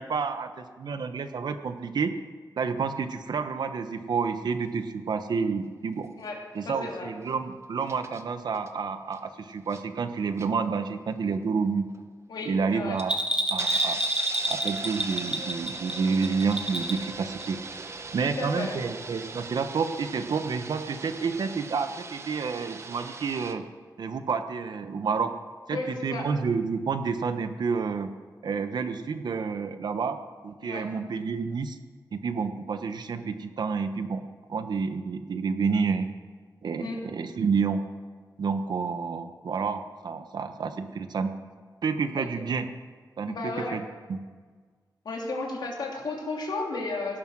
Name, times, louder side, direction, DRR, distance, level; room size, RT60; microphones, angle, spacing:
voice 1, 0.0-2.1 2.6-6.1 6.5-11.9 12.4-13.1 13.5-14.0 14.5-17.6 18.1-23.6 24.0-25.3 25.7-28.1 28.4-31.8 32.1-36.1 36.6-37.8 38.4-41.3 41.8-42.7 43.2-43.8 44.1-44.2, right 5 dB, 75° right, 9 dB, 1.1 m, -29 dB
sound 1, 4.8-4.9 7.8-8.2 8.5-8.7 9.1-9.2 9.5-10.0 10.4-10.5 11.1-11.2 11.9-12.0 13.0-13.1 13.5-23.5, right 3 dB, 40° right, 0.9 m, -40 dB
voice 2, 6.2-7.1 12.3-13.0 18.2-18.8 25.7-26.3 30.6-30.9 36.8-37.0 42.2-42.3 43.3-43.8 45.0-47.2, left 3 dB, 80° left, -1 dB, 2.9 m, -34 dB
Bell, 13.0-17.1 17.4-17.5, right 1 dB, 15° right, 1.5 m, -28 dB
17.5 x 11.5 x 6.2 m, 1.5 s
wide cardioid pair, 180°, 7 cm